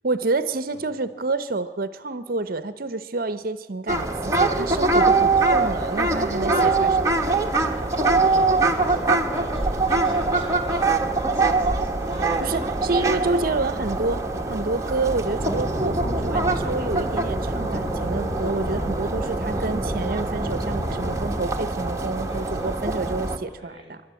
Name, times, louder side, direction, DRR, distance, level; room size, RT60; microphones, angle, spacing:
voice 1, 0.0-7.3 12.4-24.0, right 3 dB, 55° right, 12 dB, 0.8 m, -28 dB
sound 1, 3.9-23.4, right 3 dB, 15° right, 1.2 m, -23 dB
voice 2, 7.3-13.5 22.1-22.9 23.4-24.0, equal, 30° left, 1 dB, 4.7 m, -43 dB
sound 2, 15.3-21.4, right 1 dB, 5° left, 4.7 m, -30 dB
27.5 x 12.0 x 8.3 m, 1.4 s
head